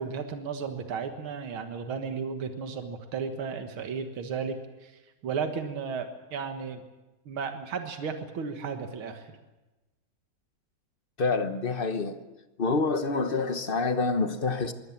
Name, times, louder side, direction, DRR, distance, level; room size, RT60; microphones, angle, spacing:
voice 1, 0.0-4.6 4.8-4.9 5.2-6.8 7.3-9.3, right 6 dB, 80° right, 6 dB, 2.4 m, -34 dB
voice 2, 11.2-12.2 12.6-14.7, left 3 dB, 35° left, 9 dB, 1.0 m, -27 dB
23.0 x 17.5 x 7.3 m, 1.1 s
omnidirectional pair, 2.3 m